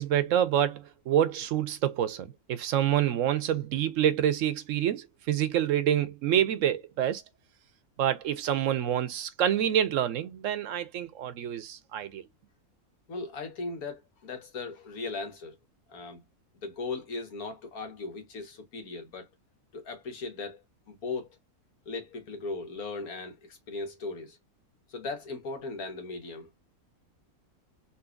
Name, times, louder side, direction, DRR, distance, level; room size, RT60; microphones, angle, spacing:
voice 1, 0.0-7.2 8.0-12.3, right 10 dB, 70° right, 0.9 m, -27 dB
voice 2, 13.1-15.6 15.9-16.2 16.6-19.3 19.7-20.6 20.9-21.4 21.8-24.4 24.9-26.5, left 3 dB, 85° left, 1.7 m, -38 dB
3.9 x 2.7 x 2.3 m
omnidirectional pair, 1.5 m